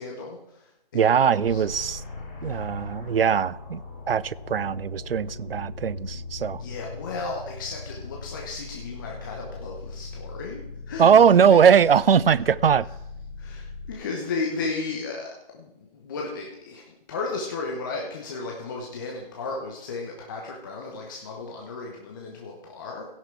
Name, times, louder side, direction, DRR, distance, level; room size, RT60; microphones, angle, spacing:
voice 1, 0.0-1.6 2.4-2.5 6.6-11.6 13.4-23.1, left 3 dB, 20° left, 1.0 m, -34 dB
voice 2, 0.9-2.0 2.4-6.6 11.0-12.9, right 7 dB, 75° right, 0.5 m, -20 dB
sound 1, 1.4-13.9, left 3 dB, 5° left, 0.5 m, -40 dB
16.5 x 6.2 x 4.6 m
figure-of-eight pair, 155°, 29 cm